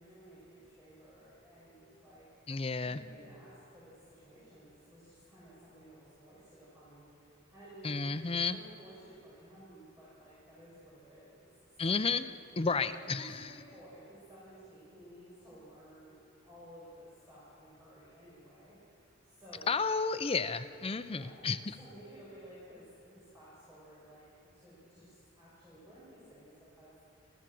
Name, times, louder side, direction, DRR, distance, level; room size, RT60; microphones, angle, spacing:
voice 1, 0.0-11.5 11.8-12.1 12.7-19.8 21.0-21.4 21.8-27.3, right 1 dB, 15° right, -9 dB, 6.1 m, -55 dB
voice 2, 2.5-3.0 7.8-8.6 11.8-12.3 12.6-13.5 19.7-21.8, left 4 dB, 25° left, 10 dB, 0.6 m, -32 dB
27.5 x 14.5 x 7.7 m, 2.9 s
head